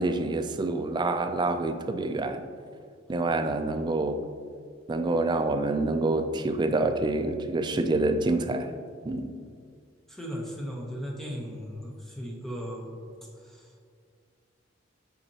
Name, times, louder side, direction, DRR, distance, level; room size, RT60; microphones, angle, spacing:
voice 1, 0.0-2.4 3.1-4.2 4.9-8.7 9.1-9.3, right 2 dB, 25° right, 8 dB, 0.3 m, -27 dB
voice 2, 10.1-12.9 13.3-13.9, equal, ahead, -2 dB, 0.9 m, -37 dB
8.1 x 4.2 x 2.8 m, 2.1 s
head